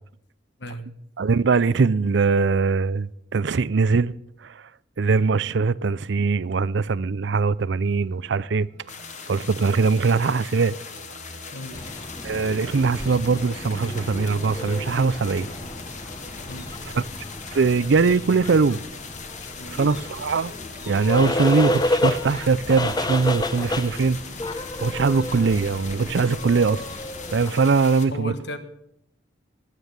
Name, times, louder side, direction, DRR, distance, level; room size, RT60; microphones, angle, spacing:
voice 1, 0.6-0.9 11.5-11.8 16.4-16.7 19.4-19.8 28.1-28.6, left 1 dB, 65° left, 1.5 m, -36 dB
voice 2, 1.2-4.1 4.4-4.6 5.0-8.7 9.3-10.8 12.2-15.5 16.9-17.0 17.5-18.8 19.7-20.5 20.9-24.2 24.8-26.8 27.3-28.3, right 4 dB, 65° right, 0.5 m, -21 dB
sound 1, 7.8-27.6, right 1 dB, 80° right, 2.4 m, -48 dB
sound 2, 8.9-28.1, left 5 dB, 40° left, 1.9 m, -40 dB
sound 3, 11.7-27.5, left 1 dB, 20° left, 0.9 m, -31 dB
21.0 x 9.2 x 6.6 m
head